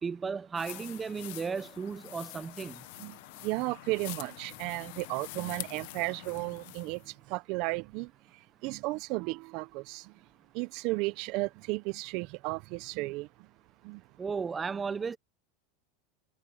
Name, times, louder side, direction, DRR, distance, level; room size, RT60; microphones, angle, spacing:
voice 1, 0.0-2.8 14.2-15.2, right 5 dB, 20° right, 1.1 m, -35 dB
sound 1, 0.5-7.1, left 21 dB, 65° left, 1.2 m, -46 dB
voice 2, 3.4-7.0 7.3-8.1 8.6-10.1 10.5-13.3 13.8-14.0, right 23 dB, 55° right, 0.7 m, -34 dB
supercardioid pair, 120°, 0 cm